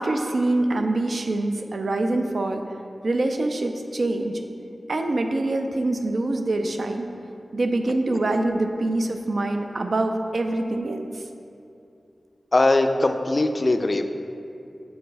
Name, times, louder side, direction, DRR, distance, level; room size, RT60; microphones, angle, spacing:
voice 1, 0.0-2.6 3.0-4.4 4.9-7.1 7.5-11.2, right 2 dB, 65° right, 5 dB, 0.4 m, -25 dB
voice 2, 12.5-14.0, left 2 dB, 40° left, 7 dB, 0.3 m, -20 dB
7.2 x 3.0 x 4.6 m, 2.6 s
wide cardioid pair, 80°, 0 cm